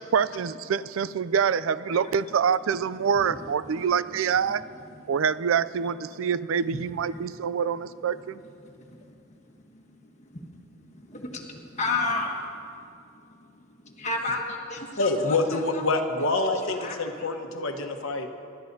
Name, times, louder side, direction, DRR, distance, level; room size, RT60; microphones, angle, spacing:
voice 1, 0.1-4.6 5.1-8.4, right 7 dB, 75° right, 16 dB, 0.4 m, -26 dB
voice 2, 8.6-9.2 9.5-13.0 13.3-15.8 16.7-17.3, left 3 dB, 35° left, 1 dB, 1.5 m, -34 dB
voice 3, 15.0-18.3, left 2 dB, 85° left, 5 dB, 1.1 m, -26 dB
26.0 x 12.5 x 2.7 m, 2.5 s
head